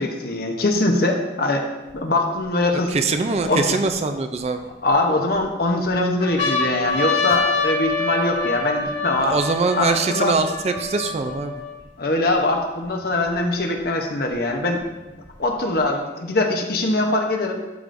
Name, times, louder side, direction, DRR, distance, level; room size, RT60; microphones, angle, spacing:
voice 1, 0.0-1.6 1.9-2.9 3.5-3.6 4.8-9.4 9.8-10.4 12.0-14.8 15.4-17.6, left 2 dB, 55° left, 3 dB, 0.9 m, -22 dB
sound 1, 1.9-2.0 2.6-3.9 4.6-5.4 5.9-6.0 6.2-11.8 12.5-12.6 12.8-13.8 14.8-15.8, left 3 dB, 75° left, 1.8 m, -26 dB
voice 2, 2.9-4.6 9.2-11.5, right 3 dB, 35° right, 7 dB, 0.4 m, -23 dB
12.0 x 4.9 x 2.6 m, 1.1 s
head